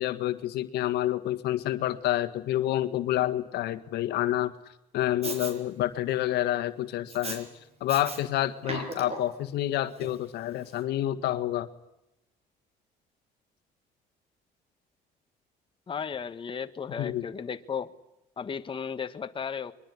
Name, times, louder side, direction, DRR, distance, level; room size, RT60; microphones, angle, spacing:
voice 1, 0.0-4.5 4.9-7.5 7.8-11.7 17.0-17.3, left 13 dB, 80° left, 10 dB, 1.7 m, -28 dB
Respiratory sounds, 5.2-5.5 7.1-7.4 7.9-8.2 8.6-9.4 10.0-10.1, right 3 dB, 35° right, 6.5 m, -36 dB
voice 2, 15.9-17.9 18.4-19.7, left 6 dB, 30° left, 9 dB, 1.5 m, -35 dB
23.5 x 23.0 x 9.9 m, 0.86 s
cardioid pair, 110°, 17 cm